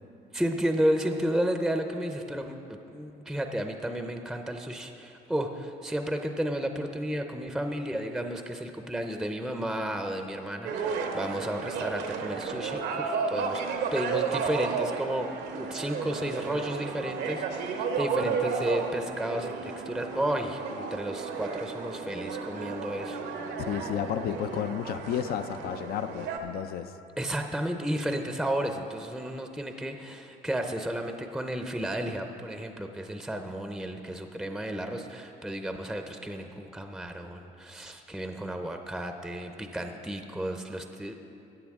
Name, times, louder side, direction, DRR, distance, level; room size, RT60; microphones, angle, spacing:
voice 1, 0.3-13.6 13.9-23.2 27.2-41.1, right 1 dB, ahead, 5 dB, 0.6 m, -32 dB
sound 1, 10.7-26.4, right 5 dB, 75° right, 1.0 m, -33 dB
voice 2, 23.6-26.9, left 10 dB, 65° left, 11 dB, 0.5 m, -32 dB
15.0 x 8.9 x 3.6 m, 2.7 s
cardioid pair, 110°, 17 cm